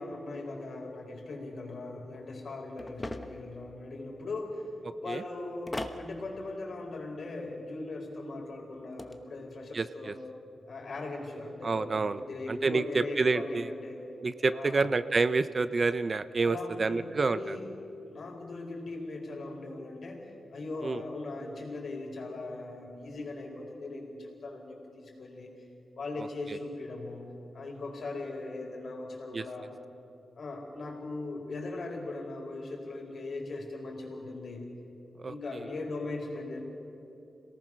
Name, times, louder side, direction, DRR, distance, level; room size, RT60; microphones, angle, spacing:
voice 1, 0.0-4.7 5.0-10.2 10.7-14.0 14.5-14.9 16.4-17.7 18.1-25.5 25.9-27.2 27.5-29.7 30.3-34.7 35.3-36.6, left 2 dB, 55° left, 0 dB, 4.5 m, -39 dB
sound 1, 2.8-3.5 5.7-6.1 8.7-9.2, left 2 dB, 15° left, 1.0 m, -38 dB
voice 2, 9.7-10.1 11.6-13.7 14.2-17.6 20.8-21.0 29.3-29.4 35.2-35.3, right 3 dB, 35° right, 13 dB, 0.5 m, -28 dB
27.0 x 18.5 x 6.3 m, 2.8 s
wide cardioid pair, 155°, 0 cm